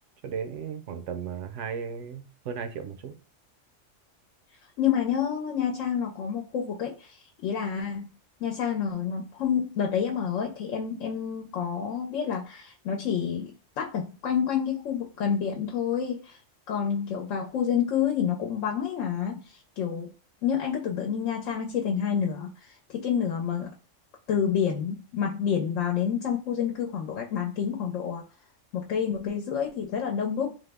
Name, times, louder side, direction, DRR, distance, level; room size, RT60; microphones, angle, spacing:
voice 1, 0.2-3.2, right 6 dB, 75° right, 0.9 m, -35 dB
voice 2, 4.8-8.1 8.4-16.4 16.7-20.1 20.4-23.7 24.3-28.2 28.7-30.5, left 8 dB, 90° left, 1.0 m, -28 dB
3.4 x 2.0 x 3.3 m
omnidirectional pair, 1.3 m